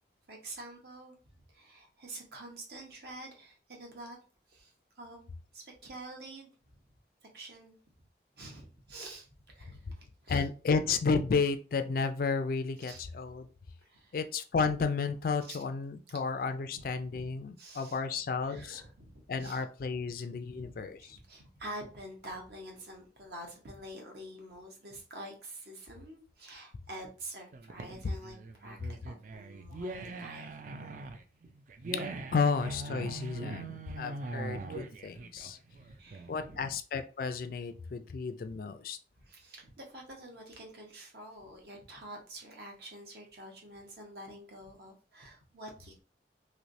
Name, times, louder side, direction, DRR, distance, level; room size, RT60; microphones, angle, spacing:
voice 1, 0.3-1.2 1.5-4.2 4.5-5.3 5.5-6.8 7.2-7.8 8.4-10.5 12.9-13.0 13.8-14.2 15.5-15.6 16.5-17.0 17.6-18.0 18.4-19.6 20.0-30.5 35.7-36.7 38.0-38.1 39.2-46.0, right 1 dB, 65° right, 1 dB, 1.0 m, -48 dB
voice 2, 10.3-13.5 14.1-18.8 19.3-21.0 31.9-35.6 36.3-39.0, left 5 dB, 55° left, 9 dB, 0.3 m, -32 dB
sound 1, 27.5-36.6, right 2 dB, 45° right, 0.3 m, -41 dB
3.2 x 3.0 x 2.6 m, 0.36 s
head